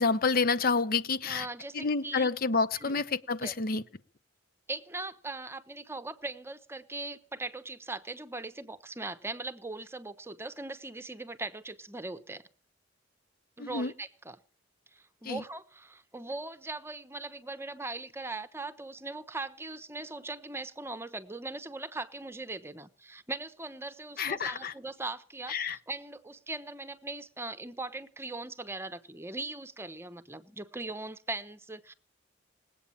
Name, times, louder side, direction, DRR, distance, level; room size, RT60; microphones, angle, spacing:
voice 1, 0.0-1.5 1.7-3.8 13.6-13.9 15.2-15.4 24.2-24.7 25.5-25.8, left 4 dB, 50° left, 0.8 m, -28 dB
voice 2, 1.3-2.3 2.7-3.0 3.4-3.5 4.7-12.5 13.6-14.4 14.9-31.9, right 2 dB, 15° right, 0.9 m, -40 dB
20.0 x 8.5 x 8.5 m
head